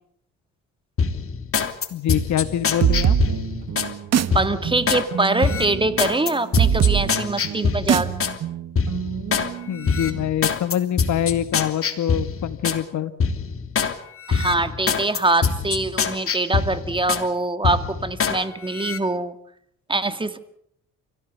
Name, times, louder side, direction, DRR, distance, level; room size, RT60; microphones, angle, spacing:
sound 1, 1.0-3.9 4.3-5.0 5.4-8.4 8.8-9.5 9.8-12.8 13.2-13.9 14.3-17.3 17.6-18.4 18.7-19.0, left 5 dB, 45° left, 3.0 m, -24 dB
voice 1, 1.9-3.2 9.7-13.1, left 10 dB, 70° left, 12 dB, 1.8 m, -25 dB
sound 2, 2.8-10.2, right 9 dB, 60° right, 1.9 m, -24 dB
voice 2, 4.3-8.1 14.3-19.4 19.9-20.4, right 2 dB, 15° right, 10 dB, 2.3 m, -23 dB
29.0 x 17.0 x 8.4 m, 0.70 s
cardioid pair, 90°, 30 cm